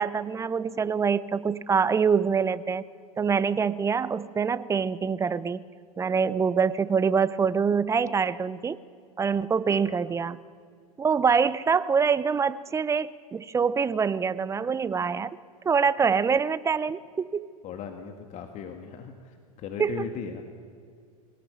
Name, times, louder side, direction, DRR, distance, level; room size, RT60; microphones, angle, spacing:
voice 1, 0.0-2.8 3.2-5.6 6.0-8.8 9.2-10.4 11.0-15.4 15.6-17.5 19.8-20.1, right 6 dB, 15° right, 18 dB, 0.6 m, -25 dB
voice 2, 9.7-10.0 17.6-20.4, left 7 dB, 40° left, 5 dB, 1.8 m, -38 dB
21.5 x 18.0 x 8.2 m, 2.2 s
hypercardioid pair, 95°, 19 cm